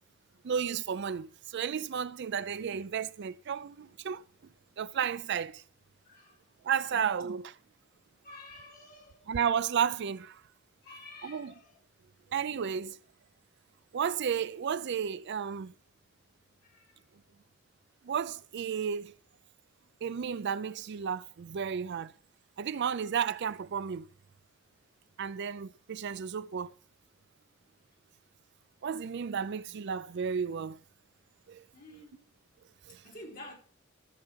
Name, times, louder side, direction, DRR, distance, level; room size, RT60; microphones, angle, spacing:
voice 1, 0.4-4.2 4.8-5.6 6.6-7.6 9.3-10.4 11.2-11.5 12.3-13.0 13.9-15.7 18.0-19.2 20.0-22.1 22.6-24.1 25.2-26.7 28.8-30.8 31.5-31.6 32.9-33.0, right 7 dB, 55° right, 0.4 m, -33 dB
voice 2, 6.1-6.4 6.8-7.1 8.2-9.3 10.8-11.8 16.6-17.0 31.7-32.3 32.9-33.6, left 1 dB, 45° left, 3.9 m, -50 dB
14.0 x 6.8 x 4.4 m
head